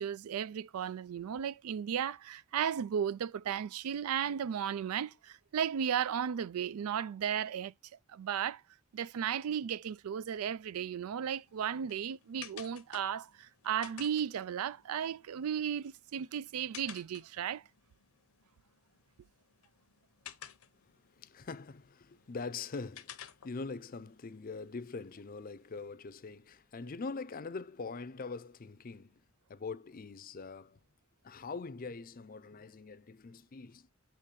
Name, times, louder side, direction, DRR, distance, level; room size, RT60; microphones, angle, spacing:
voice 1, 0.0-7.7 8.1-8.6 8.9-17.6, right 8 dB, 85° right, 0.4 m, -35 dB
sound 1, 11.2-25.9, left 10 dB, 80° left, 0.8 m, -55 dB
voice 2, 21.2-29.2 29.5-30.8 31.2-33.9, left 4 dB, 40° left, 0.5 m, -43 dB
8.3 x 3.2 x 5.1 m
head